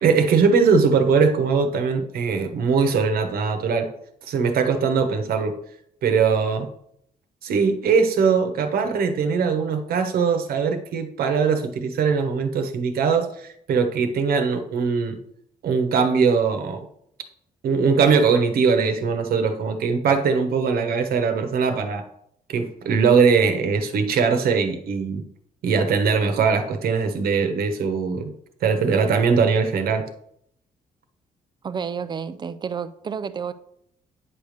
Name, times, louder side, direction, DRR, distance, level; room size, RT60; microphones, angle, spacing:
voice 1, 0.0-3.9 4.2-5.5 6.0-6.7 7.4-15.2 15.6-16.8 17.6-22.0 22.5-25.2 25.6-28.3 28.6-30.0, right 5 dB, 85° right, 1.1 m, -21 dB
voice 2, 31.6-33.5, right 6 dB, 30° right, 0.4 m, -30 dB
9.5 x 3.4 x 6.5 m
wide cardioid pair, 170°, 15 cm